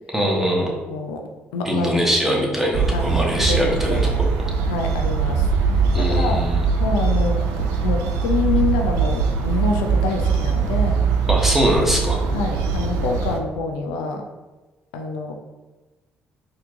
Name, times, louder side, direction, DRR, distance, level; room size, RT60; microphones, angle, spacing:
voice 1, 0.1-0.7 1.6-4.3 5.9-6.6 11.3-12.2, equal, 5° right, -2 dB, 1.1 m, -22 dB
voice 2, 0.7-1.2 1.5-1.9 2.3-2.5 2.9-3.1 3.5-4.2 4.7-6.4 6.8-11.0 11.6-11.7 12.3-14.3 14.9-15.3, left 4 dB, 85° left, 3 dB, 0.3 m, -27 dB
sound 1, 2.7-13.4, right 5 dB, 80° right, 0.4 m, -21 dB
4.3 x 2.7 x 2.5 m, 1.2 s
hypercardioid pair, 50°, 5 cm